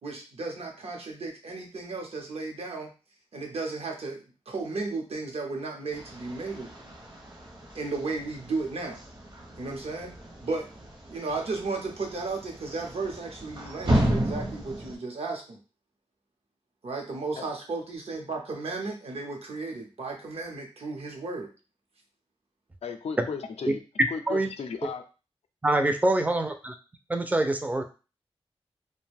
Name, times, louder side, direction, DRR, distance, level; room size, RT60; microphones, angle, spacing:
voice 1, 0.0-2.9 3.3-6.7 7.7-9.0 9.6-10.1 10.4-10.7 11.1-15.6 16.8-21.5, right 3 dB, 75° right, 0.7 m, -34 dB
sound 1, 5.9-14.9, right 1 dB, 45° right, 0.7 m, -33 dB
voice 2, 22.8-23.8 24.1-25.1, left 5 dB, 90° left, 0.4 m, -35 dB
voice 3, 24.0-24.5 25.6-26.7 27.1-27.8, right 1 dB, 15° right, 0.4 m, -25 dB
2.5 x 2.1 x 3.3 m
wide cardioid pair, 105°, 10 cm